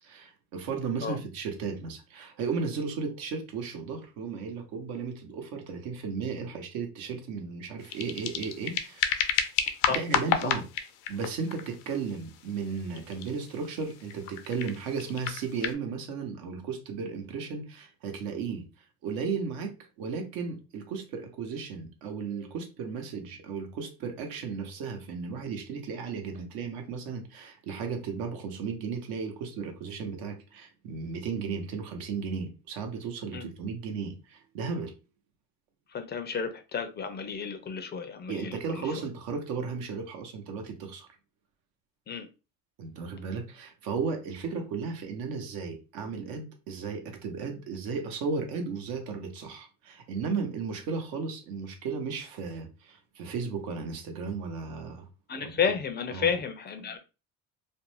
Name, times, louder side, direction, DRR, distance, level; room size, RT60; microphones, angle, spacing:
voice 1, 0.0-9.1 9.9-10.6 11.1-18.6 19.0-34.9 38.3-41.1 42.8-55.1 55.4-55.5 56.1-56.3, right 5 dB, 70° right, 0.9 m, -35 dB
sound 1, 7.8-15.8, left 9 dB, 85° left, 0.5 m, -32 dB
voice 2, 35.9-38.6 42.1-42.3 55.3-57.0, left 6 dB, 30° left, 0.4 m, -31 dB
2.5 x 2.1 x 3.0 m
supercardioid pair, 95°, 37 cm